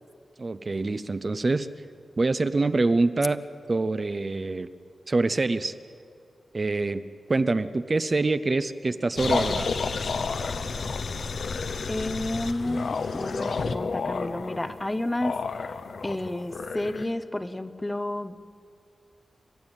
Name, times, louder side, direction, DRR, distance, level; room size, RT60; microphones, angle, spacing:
voice 1, 0.4-1.7 2.2-3.4 3.7-4.7 5.1-5.7 6.5-7.0 7.3-9.7, right 3 dB, 35° right, 11 dB, 0.6 m, -25 dB
sound 1, 9.2-17.1, left 4 dB, 70° left, 0.9 m, -30 dB
voice 2, 11.9-15.4 16.0-18.4, left 1 dB, 15° left, 11 dB, 0.8 m, -31 dB
29.5 x 12.5 x 8.9 m, 2.3 s
wide cardioid pair, 130°, 0 cm